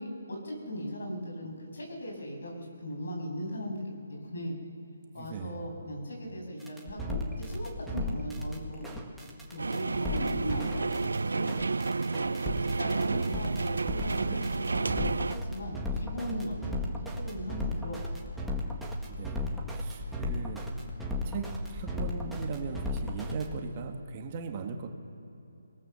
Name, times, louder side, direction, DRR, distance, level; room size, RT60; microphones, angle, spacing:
voice 1, 0.0-3.8 4.1-4.6 5.1-9.0 9.5-12.3 12.6-16.6 16.8-18.2, equal, 70° left, 1 dB, 7.2 m, -39 dB
voice 2, 5.1-5.6 19.0-20.6 21.2-24.9, right 5 dB, 30° right, 4 dB, 1.6 m, -39 dB
sound 1, 6.6-23.5, left 2 dB, ahead, 1.7 m, -35 dB
sound 2, 9.6-15.3, right 3 dB, 85° right, 0.5 m, -30 dB
23.0 x 19.0 x 6.9 m, 2.9 s
hypercardioid pair, 165°, 0 cm